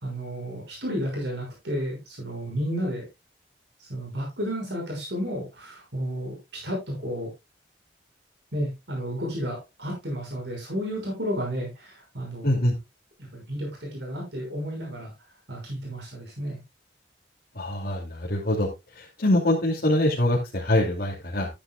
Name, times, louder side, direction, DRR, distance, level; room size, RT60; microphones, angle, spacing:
voice 1, 0.0-3.0 3.8-6.4 6.6-7.3 8.5-12.5 13.3-15.1 15.5-16.6, equal, 75° right, -1 dB, 6.1 m, -32 dB
voice 2, 12.4-12.7 17.6-18.7 18.9-21.5, left 1 dB, 60° left, -4 dB, 2.7 m, -24 dB
13.5 x 9.9 x 2.4 m, 0.24 s
head